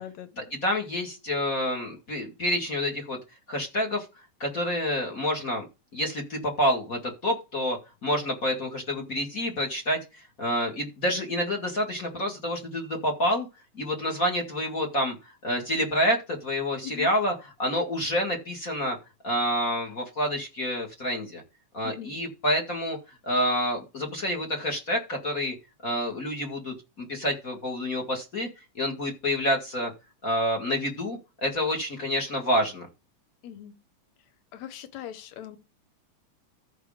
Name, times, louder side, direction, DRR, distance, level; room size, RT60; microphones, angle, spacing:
voice 1, 0.0-0.6 16.8-17.1 21.8-22.2 33.4-33.8 34.5-35.6, left 10 dB, 70° left, 2.5 m, -40 dB
voice 2, 0.6-3.2 3.5-4.0 4.4-5.7 5.9-10.0 10.4-13.5 13.8-15.2 15.4-17.3 17.6-19.0 19.2-21.4 21.7-23.0 23.2-25.6 25.8-28.5 28.7-29.9 30.2-32.9, equal, 30° left, 2.3 m, -28 dB
14.0 x 5.0 x 5.0 m
omnidirectional pair, 3.3 m